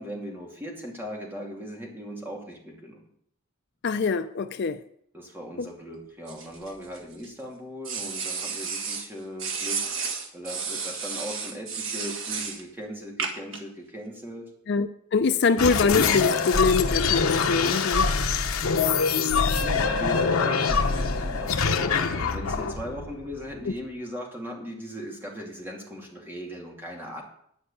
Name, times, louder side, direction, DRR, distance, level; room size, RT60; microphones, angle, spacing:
voice 1, 0.0-3.0 5.1-9.8 10.3-14.5 19.6-27.2, equal, 10° right, -1 dB, 2.4 m, -38 dB
voice 2, 3.8-4.8 5.6-5.7 14.7-18.1, left 4 dB, 55° left, 10 dB, 0.5 m, -24 dB
sound 1, 6.3-7.3 7.8-9.1 9.4-12.6 13.2-13.6, right 5 dB, 70° right, 1.7 m, -32 dB
sound 2, 15.6-23.8, left 5 dB, 90° left, 0.9 m, -24 dB
11.0 x 5.3 x 8.4 m, 0.69 s
head